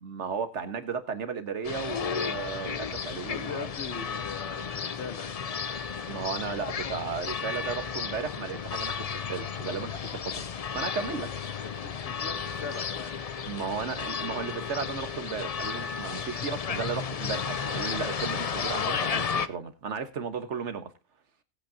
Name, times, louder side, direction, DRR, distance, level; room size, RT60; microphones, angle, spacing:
voice 1, 0.0-3.7 6.1-11.9 13.5-20.9, right 6 dB, 80° right, 1.6 m, -35 dB
sound 1, 1.6-19.5, left 6 dB, 45° left, 0.5 m, -33 dB
voice 2, 3.3-5.3 11.6-13.1, left 5 dB, 70° left, 1.5 m, -40 dB
18.5 x 8.1 x 2.8 m
omnidirectional pair, 1.2 m